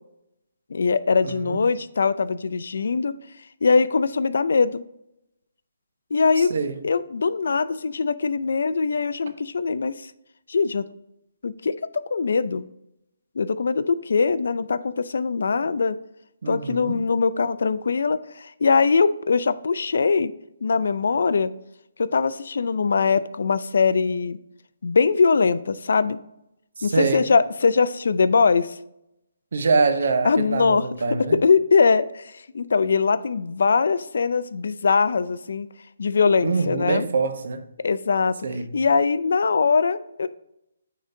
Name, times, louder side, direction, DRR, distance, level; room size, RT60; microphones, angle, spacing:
voice 1, 0.7-3.1 3.6-4.8 6.1-6.5 6.8-10.1 10.5-10.9 11.4-11.7 12.1-12.7 13.4-16.0 16.5-20.3 20.6-21.5 22.0-24.4 24.8-26.2 26.8-28.8 30.2-30.8 31.4-35.7 36.0-37.1 37.8-38.4 38.7-40.3, left 5 dB, 70° left, 15 dB, 0.4 m, -21 dB
voice 2, 1.2-1.6 6.4-6.8 16.4-16.9 26.8-27.2 29.5-31.4 36.4-37.6 38.4-38.7, right 4 dB, 60° right, 8 dB, 0.9 m, -24 dB
9.3 x 3.8 x 2.7 m, 0.82 s
hypercardioid pair, 165°, 0 cm